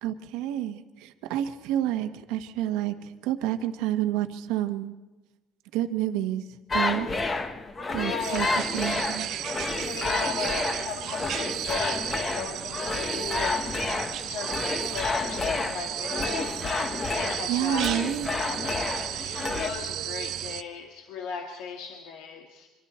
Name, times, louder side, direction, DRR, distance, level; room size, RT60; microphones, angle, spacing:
voice 1, 0.0-4.9 5.7-6.5 6.7-7.1 7.9-8.5 8.7-9.3 17.5-18.4, right 12 dB, 85° right, 8 dB, 1.3 m, -29 dB
sound 1, 6.7-19.7, left 3 dB, 25° left, 1.3 m, -30 dB
voice 2, 8.0-8.7 9.8-13.9 14.2-18.0 18.5-22.7, left 6 dB, 80° left, 4 dB, 1.8 m, -37 dB
sound 2, 8.2-20.6, right 12 dB, 55° right, 0.7 m, -34 dB
26.5 x 25.0 x 4.4 m, 1.1 s
cardioid pair, 135°, 0 cm